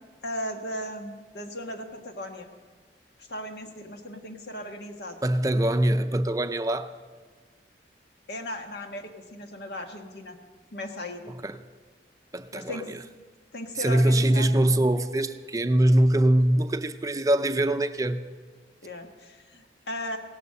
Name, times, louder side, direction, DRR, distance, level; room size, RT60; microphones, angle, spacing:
voice 1, 0.2-2.5 3.3-5.2 8.3-10.4 10.7-11.2 12.5-12.9 13.5-14.5 18.8-20.2, left 1 dB, 70° left, 1.4 m, -36 dB
voice 2, 5.2-6.9 11.3-11.5 12.3-13.0 13.8-18.2, right 1 dB, 20° right, 0.5 m, -23 dB
17.0 x 11.0 x 6.6 m
head